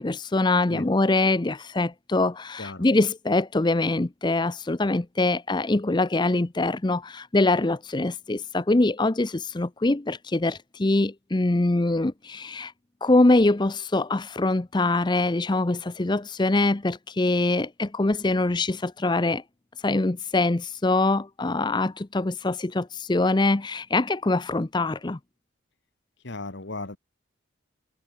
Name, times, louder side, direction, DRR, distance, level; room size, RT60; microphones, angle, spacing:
voice 1, 0.0-12.7 13.0-19.4 19.8-25.2, left 2 dB, 20° left, 0.6 m, -24 dB
voice 2, 26.2-27.0, left 2 dB, 55° left, 1.7 m, -35 dB
head